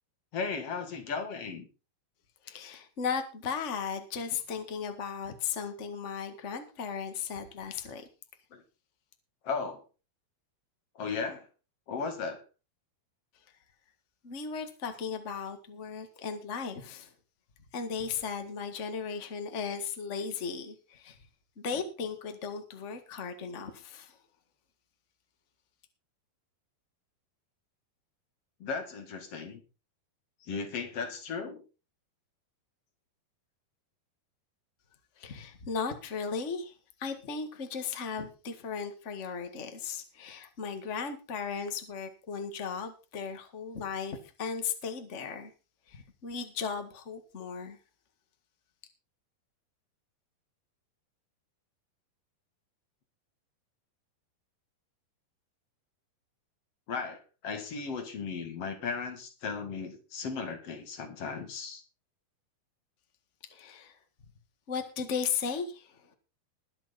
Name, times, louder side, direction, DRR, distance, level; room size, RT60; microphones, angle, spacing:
voice 1, 0.3-1.7 8.5-8.6 9.4-9.8 11.0-11.5 11.9-12.4 28.6-29.6 30.4-31.6 56.9-61.8, left 5 dB, 45° left, 6 dB, 2.5 m, -36 dB
voice 2, 2.4-8.1 14.2-17.1 17.7-21.2 21.6-24.2 35.2-36.7 37.0-45.5 45.9-47.8 63.5-64.0 64.7-66.0, left 6 dB, 75° left, 6 dB, 0.6 m, -36 dB
21.0 x 7.7 x 4.1 m, 0.32 s
omnidirectional pair, 4.5 m